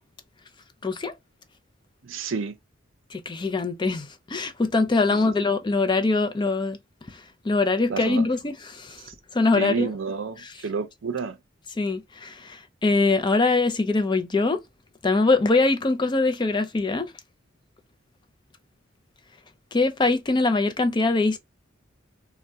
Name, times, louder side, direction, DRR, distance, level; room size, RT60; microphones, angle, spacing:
voice 1, 0.8-1.1 3.1-6.8 7.1-9.0 9.3-9.9 10.4-10.5 11.8-14.6 15.0-17.1 19.7-21.4, left 3 dB, 25° left, 0.4 m, -23 dB
voice 2, 2.0-2.5 5.1-5.3 7.9-8.3 9.1-9.2 9.5-11.3, right 5 dB, 75° right, 0.5 m, -30 dB
3.3 x 2.2 x 2.6 m
head